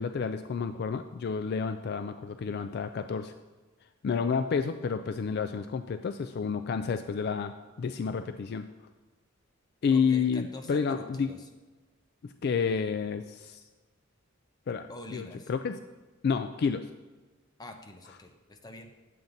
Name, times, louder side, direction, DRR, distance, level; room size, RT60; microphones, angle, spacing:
voice 1, 0.0-3.3 4.0-8.7 9.8-11.3 12.2-13.6 14.7-15.8 16.2-16.8, left 5 dB, 50° left, 9 dB, 0.3 m, -30 dB
voice 2, 9.9-11.5 14.9-15.5 17.6-18.9, left 1 dB, 20° left, 5 dB, 0.7 m, -45 dB
9.3 x 7.2 x 3.9 m, 1.2 s
head